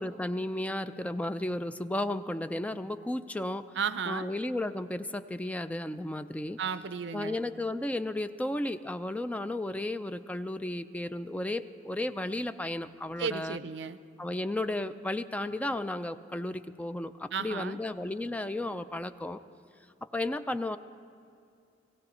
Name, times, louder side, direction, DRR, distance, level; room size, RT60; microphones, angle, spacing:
voice 1, 0.0-3.7 4.1-6.6 7.1-13.6 14.2-19.4 20.1-20.8, left 1 dB, 10° left, 11 dB, 0.4 m, -34 dB
voice 2, 3.8-4.3 6.6-7.4 13.2-14.0 17.3-17.8, right 6 dB, 70° right, 13 dB, 0.5 m, -34 dB
17.5 x 16.5 x 4.2 m, 2.5 s
head